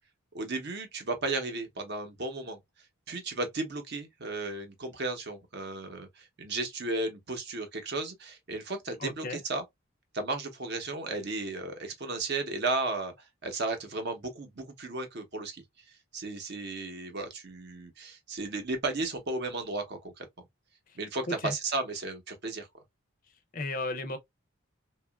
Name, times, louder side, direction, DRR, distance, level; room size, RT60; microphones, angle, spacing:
voice 1, 0.3-2.6 3.1-9.6 10.1-20.5 21.0-22.7, right 3 dB, 50° right, 0.8 m, -34 dB
voice 2, 9.0-9.4 20.9-21.0 21.3-21.5 23.5-24.2, left 2 dB, 40° left, 0.4 m, -34 dB
2.9 x 2.3 x 2.2 m
head